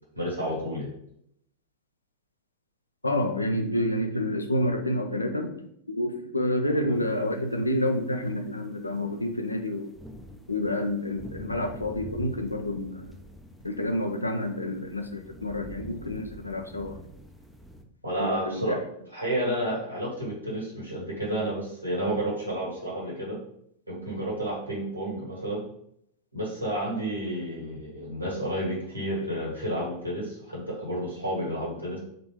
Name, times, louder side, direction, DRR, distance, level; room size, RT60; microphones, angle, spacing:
voice 1, 0.1-0.9 6.7-6.9 18.0-18.8 19.1-23.4 23.9-25.6 26.3-32.0, right 1 dB, 85° right, -4 dB, 1.5 m, -31 dB
voice 2, 3.0-5.5 5.9-9.9 10.5-13.1 13.6-17.0 18.2-18.8, left 1 dB, 85° left, 5 dB, 0.5 m, -28 dB
sound 1, 7.5-7.6 8.1-17.8, equal, ahead, 0.5 m, -45 dB
3.7 x 3.4 x 2.9 m, 0.72 s
figure-of-eight pair, 90°, 0 cm